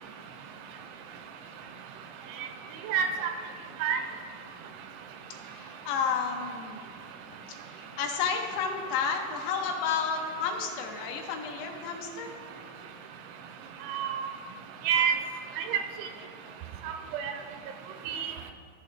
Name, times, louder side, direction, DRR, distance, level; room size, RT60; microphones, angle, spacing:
voice 1, 2.9-3.3 3.8-4.0 13.9-14.2 14.9-15.2 15.6-15.8 16.9-17.3 18.1-18.3, right 7 dB, 80° right, 6 dB, 2.9 m, -27 dB
voice 2, 5.4-6.8 7.6-12.3, left 6 dB, 80° left, 3 dB, 2.9 m, -31 dB
15.0 x 6.7 x 3.4 m, 2.2 s
omnidirectional pair, 5.4 m